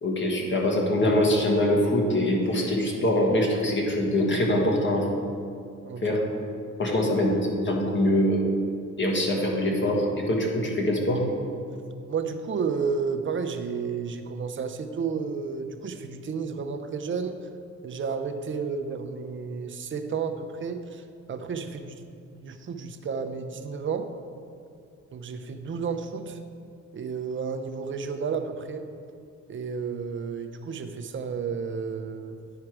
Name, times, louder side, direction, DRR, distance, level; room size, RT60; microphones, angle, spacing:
voice 1, 0.0-5.1 6.0-6.2 6.8-7.4 7.6-8.4 9.0-11.2, left 1 dB, 40° left, 0 dB, 1.6 m, -23 dB
voice 2, 5.8-6.2 12.1-17.4 17.8-21.0 21.3-22.0 22.3-24.1 25.1-26.4 26.9-28.9 29.5-32.4, right 5 dB, 40° right, 7 dB, 0.7 m, -32 dB
10.0 x 4.6 x 4.8 m, 2.4 s
cardioid pair, 90°, 30 cm